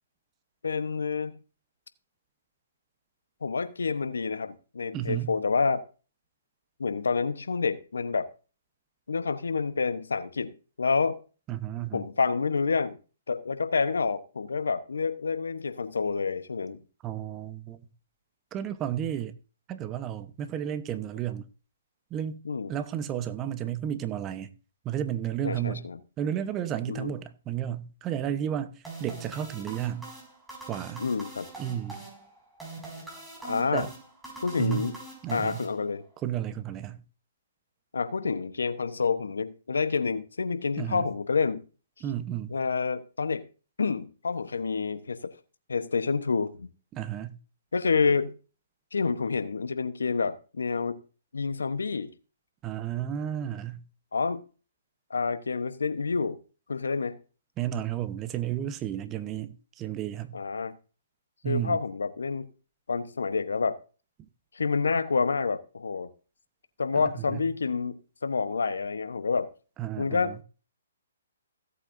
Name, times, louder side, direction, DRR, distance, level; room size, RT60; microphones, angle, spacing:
voice 1, 0.6-1.4 3.4-5.8 6.8-8.3 9.1-11.2 11.9-13.0 13.3-16.8 22.4-22.7 25.4-26.0 26.9-27.1 31.0-31.5 33.4-33.9 34.4-34.9 35.3-36.0 37.9-41.6 42.5-43.4 43.8-45.3 45.7-46.7 47.7-48.3 48.9-51.0 51.3-52.1 54.1-54.4 55.1-56.4 56.7-57.2 60.3-60.8 61.4-62.5 62.9-63.8 64.5-66.1 66.8-69.5 70.0-70.4, left 4 dB, 80° left, 1.0 m, -28 dB
voice 2, 4.9-5.3 11.5-12.1 17.0-17.9 18.5-19.3 19.7-21.5 22.1-22.4 22.7-24.5 24.8-25.9 26.2-30.1 30.7-31.1 31.6-32.0 33.7-33.9 34.6-34.9 35.2-35.7 36.2-37.0 40.8-41.1 42.0-42.6 46.9-47.4 52.6-53.8 57.6-60.4 61.4-61.8 66.9-67.5 69.8-70.4, right 10 dB, 25° right, 1.0 m, -32 dB
sound 1, 28.8-36.2, right 3 dB, 5° right, 5.4 m, -43 dB
17.0 x 8.2 x 2.7 m
hypercardioid pair, 135°, 0 cm